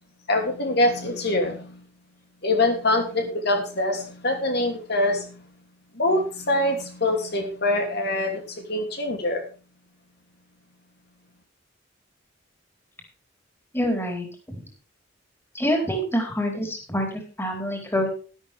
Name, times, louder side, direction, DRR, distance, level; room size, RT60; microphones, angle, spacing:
voice 1, 0.3-1.8 2.4-5.3 5.9-9.4, left 2 dB, 55° left, 4 dB, 2.9 m, -24 dB
voice 2, 13.7-14.3 15.5-18.1, equal, 10° left, 2 dB, 4.3 m, -26 dB
13.0 x 12.5 x 3.6 m, 0.36 s
head